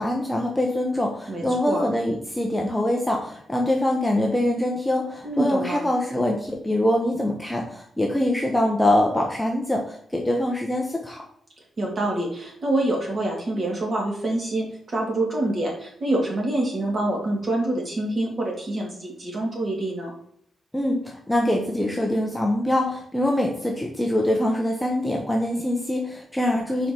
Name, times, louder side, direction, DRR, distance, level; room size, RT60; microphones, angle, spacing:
voice 1, 0.0-11.2 20.7-26.9, left 1 dB, 5° left, 0 dB, 0.9 m, -24 dB
voice 2, 1.3-1.8 5.2-5.8 11.8-20.1, right 1 dB, 35° right, -1 dB, 2.6 m, -26 dB
5.3 x 5.0 x 5.9 m, 0.66 s
wide cardioid pair, 170°, 0 cm